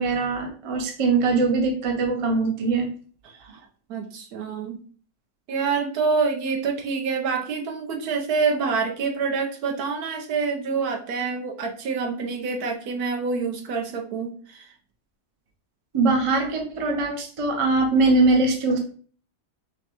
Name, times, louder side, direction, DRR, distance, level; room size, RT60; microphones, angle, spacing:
voice 1, 0.0-2.9 15.9-18.8, right 3 dB, 45° right, 2 dB, 0.4 m, -22 dB
voice 2, 3.2-3.6 3.9-4.8 5.5-14.7, right 5 dB, 75° right, 2 dB, 1.2 m, -27 dB
5.6 x 2.2 x 2.9 m, 0.43 s
omnidirectional pair, 1.7 m